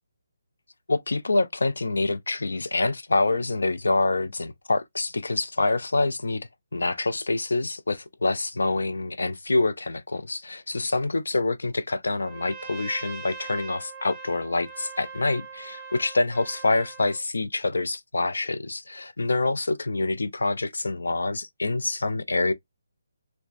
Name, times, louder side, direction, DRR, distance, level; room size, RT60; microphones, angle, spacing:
voice 1, 0.9-22.5, left 2 dB, 85° left, 0.4 m, -26 dB
Trumpet, 12.1-17.2, right 5 dB, 15° right, 0.5 m, -41 dB
2.3 x 2.2 x 2.4 m
hypercardioid pair, 160°, 0 cm